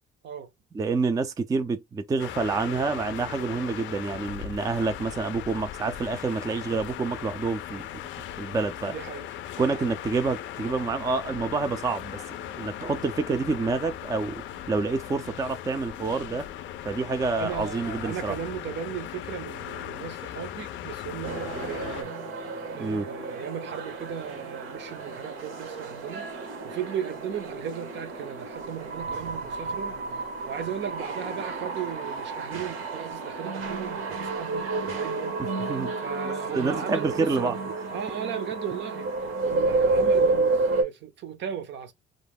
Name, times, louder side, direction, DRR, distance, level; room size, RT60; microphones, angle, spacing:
voice 1, 0.7-7.9 8.4-8.9 9.6-16.4 16.8-18.3 22.8-23.1 35.6-35.9 36.2-37.6, right 4 dB, 15° right, 0.3 m, -28 dB
sound 1, 2.2-22.0, left 11 dB, 65° left, 0.4 m, -38 dB
voice 2, 8.9-9.3 9.6-9.9 12.9-13.1 17.4-22.1 22.7-35.4 35.7-39.1 39.4-41.9, right 9 dB, 60° right, 0.6 m, -36 dB
sound 2, 21.2-40.8, right 3 dB, 80° right, 1.0 m, -30 dB
2.4 x 2.1 x 3.4 m
cardioid pair, 125°, 21 cm